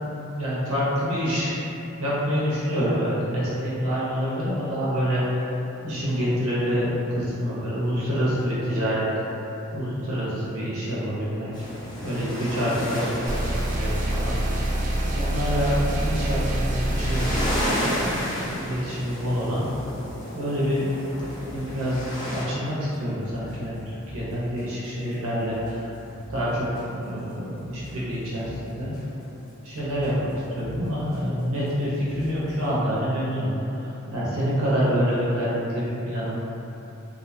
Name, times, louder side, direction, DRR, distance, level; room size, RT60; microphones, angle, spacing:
voice 1, 0.1-1.6 2.0-9.1 9.3-11.5 12.0-14.4 15.1-17.3 17.6-20.0 20.3-20.9 21.5-26.0 26.3-29.0 29.6-36.4, equal, 85° right, -8 dB, 0.6 m, -27 dB
sound 1, 11.5-22.4, equal, 20° left, 0.5 m, -33 dB
sound 2, 13.3-17.7, right 1 dB, 35° right, 0.3 m, -26 dB
sound 3, 18.4-32.7, left 1 dB, 65° left, 0.8 m, -47 dB
2.6 x 2.1 x 2.6 m, 2.9 s
head